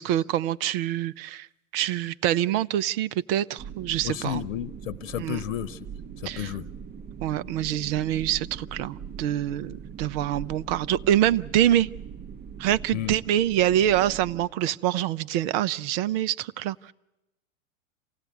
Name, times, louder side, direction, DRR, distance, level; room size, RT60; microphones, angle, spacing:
voice 1, 0.0-1.5 1.7-4.4 5.2-5.4 6.2-6.5 7.2-11.9 12.6-16.9, right 12 dB, 45° right, 17 dB, 0.8 m, -25 dB
sound 1, 3.6-14.5, right 7 dB, 25° right, 1.9 m, -41 dB
voice 2, 4.0-5.9 6.2-6.7 12.9-13.1, left 13 dB, 60° left, 15 dB, 1.1 m, -32 dB
28.5 x 16.5 x 9.4 m, 0.93 s
hypercardioid pair, 100°, 39 cm